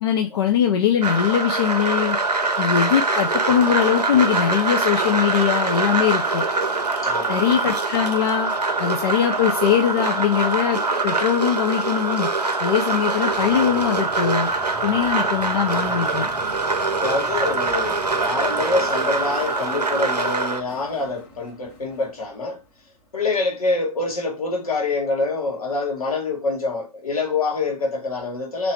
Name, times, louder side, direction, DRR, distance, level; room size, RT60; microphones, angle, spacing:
voice 1, 0.0-2.2 2.6-6.4 7.3-8.5 8.8-12.3 12.6-14.5 14.8-16.3, left 9 dB, 40° left, 0.4 m, -21 dB
sound 1, 1.0-20.6, right 3 dB, 85° right, 0.7 m, -23 dB
voice 2, 7.0-7.4 16.9-22.6 23.1-28.7, left 3 dB, 65° left, 1.3 m, -25 dB
sound 2, 13.3-18.9, right 4 dB, 25° right, 0.6 m, -43 dB
sound 3, 17.0-23.4, left 2 dB, 20° left, 1.1 m, -47 dB
3.2 x 2.6 x 3.1 m
figure-of-eight pair, 120°, 20 cm